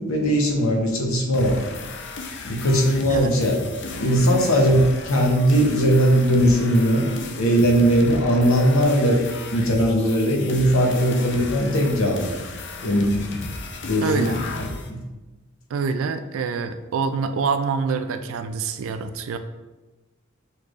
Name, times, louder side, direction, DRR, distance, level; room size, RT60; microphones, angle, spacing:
voice 1, 0.0-1.6 2.4-3.6 3.9-7.0 7.3-9.2 9.5-12.3 12.8-13.1 13.8-14.3 14.9-15.0, equal, 70° left, 1 dB, 0.9 m, -19 dB
sound 1, 1.3-14.9, left 3 dB, 55° left, 0.5 m, -35 dB
voice 2, 14.0-14.4 15.7-19.4, right 5 dB, 65° right, 9 dB, 0.3 m, -26 dB
6.7 x 3.2 x 2.5 m, 1.1 s
head